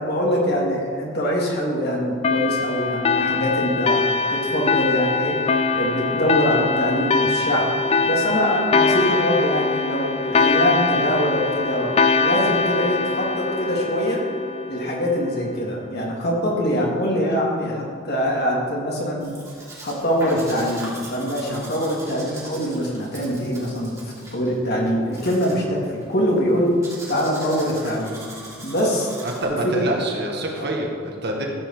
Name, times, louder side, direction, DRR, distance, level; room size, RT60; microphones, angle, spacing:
voice 1, 0.0-4.0 4.3-5.4 5.7-7.7 8.0-11.9 12.2-14.2 14.7-19.3 19.8-26.8 27.1-28.2 28.6-29.1 29.4-29.7 30.6-30.7, equal, 50° left, -3 dB, 2.7 m, -23 dB
sound 1, 2.2-15.3, left 4 dB, 30° left, 0.4 m, -22 dB
Domestic sounds home sounds, 19.2-29.4, right 2 dB, 15° right, 3.1 m, -40 dB
voice 2, 29.2-31.5, right 1 dB, 55° right, 0 dB, 1.8 m, -26 dB
14.0 x 5.6 x 7.4 m, 2.3 s
head